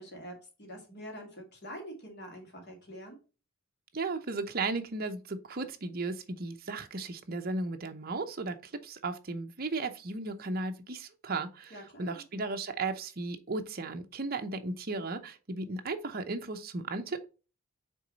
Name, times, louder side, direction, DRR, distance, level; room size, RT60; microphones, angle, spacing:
voice 1, 0.0-3.2 11.7-12.2, equal, 50° left, 2.4 m, -45 dB
voice 2, 3.9-17.3, right 3 dB, 40° right, 0.7 m, -35 dB
6.4 x 3.8 x 4.0 m
head